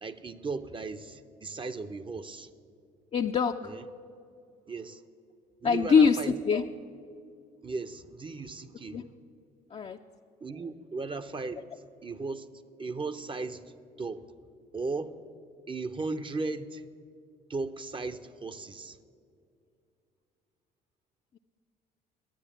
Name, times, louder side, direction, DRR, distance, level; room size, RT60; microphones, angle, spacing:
voice 1, 0.0-2.5 3.6-3.8 4.7-5.0 5.6-6.4 7.6-9.1 10.4-11.7 12.0-12.5 12.8-13.6 14.0-14.3 14.7-15.2 15.7-16.8 17.5-19.0, right 3 dB, 25° right, 0.7 m, -36 dB
voice 2, 3.1-3.7 5.6-6.7 8.9-9.0 9.7-10.0, left 6 dB, 30° left, 0.5 m, -24 dB
11.5 x 9.5 x 9.2 m
hypercardioid pair, 55°, 20 cm